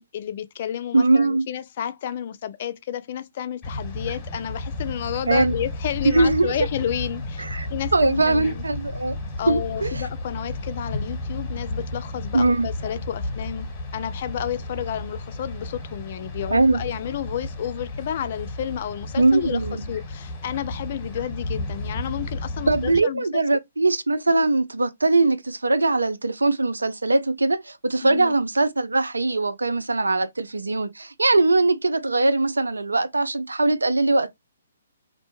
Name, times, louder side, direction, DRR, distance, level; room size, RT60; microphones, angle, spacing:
voice 1, 0.0-7.4 7.7-8.7 9.4-13.7 13.9-23.4 28.0-28.4, left 10 dB, 50° left, 0.4 m, -31 dB
voice 2, 0.9-1.5 5.3-5.5 6.0-6.7 7.4-7.7 7.9-9.1 9.5-10.0 12.3-12.7 16.5-16.8 19.2-19.8 22.7-34.3, right 2 dB, 90° right, 0.4 m, -21 dB
sound 1, 3.6-23.0, left 1 dB, 25° left, 1.1 m, -33 dB
2.6 x 2.1 x 3.0 m
figure-of-eight pair, 135°, 0 cm